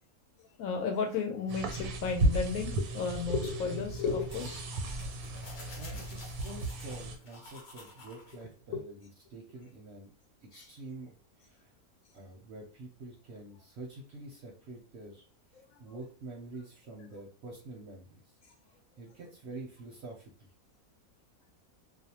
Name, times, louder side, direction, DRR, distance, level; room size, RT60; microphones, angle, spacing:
voice 1, 0.6-4.7 8.7-8.8 10.6-10.7, left 5 dB, 75° left, 2 dB, 1.0 m, -33 dB
sound 1, 1.5-7.2, right 1 dB, 90° right, 1.1 m, -34 dB
sound 2, 4.3-8.4, left 2 dB, 50° left, 0.5 m, -51 dB
voice 2, 5.5-10.1 10.4-11.7 12.1-15.2 15.5-18.4 19.0-20.5, right 2 dB, 60° right, -1 dB, 0.7 m, -47 dB
2.6 x 2.0 x 2.8 m, 0.41 s
omnidirectional pair, 1.6 m